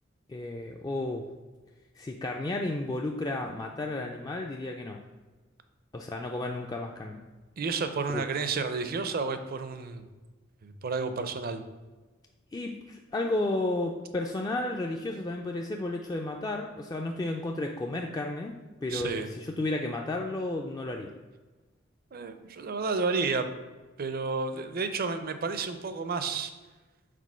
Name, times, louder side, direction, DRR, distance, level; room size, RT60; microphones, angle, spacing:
voice 1, 0.3-1.3 2.0-5.0 5.9-7.2 8.1-8.2 12.5-18.6 18.8-21.1, left 2 dB, 20° left, 1 dB, 0.3 m, -32 dB
voice 2, 7.6-10.0 10.6-11.6 18.9-19.3 22.1-23.5 24.0-26.5, right 4 dB, 50° right, 9 dB, 0.5 m, -31 dB
5.1 x 3.8 x 5.5 m, 1.3 s
head